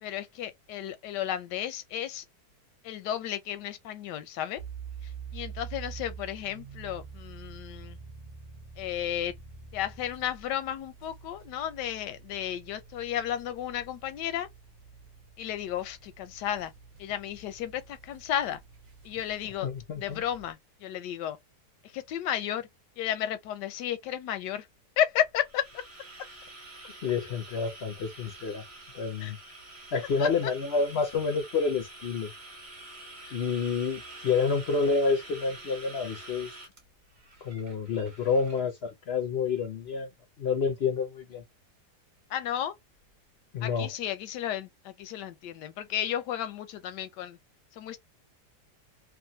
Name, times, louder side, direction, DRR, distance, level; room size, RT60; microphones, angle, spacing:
voice 1, 0.0-2.2 2.8-4.6 5.3-8.0 8.8-9.3 9.7-14.5 15.4-16.7 17.0-17.8 18.1-18.6 19.1-19.7 20.0-21.4 21.9-22.7 23.0-24.6 25.0-25.6 29.2-29.3 30.2-30.3 42.3-42.7 43.6-44.7 45.0-47.4 47.8-48.0, left 10 dB, 90° left, 1.2 m, -33 dB
sound 1, 4.6-20.5, right 6 dB, 70° right, 0.4 m, -47 dB
voice 2, 19.6-20.2 27.0-28.6 28.9-29.4 29.9-32.3 33.3-36.5 37.4-40.1 40.4-41.4 43.5-43.9, left 5 dB, 60° left, 0.6 m, -29 dB
sound 2, 25.2-38.6, right 2 dB, 30° right, 1.1 m, -47 dB
3.0 x 2.5 x 2.6 m
omnidirectional pair, 1.8 m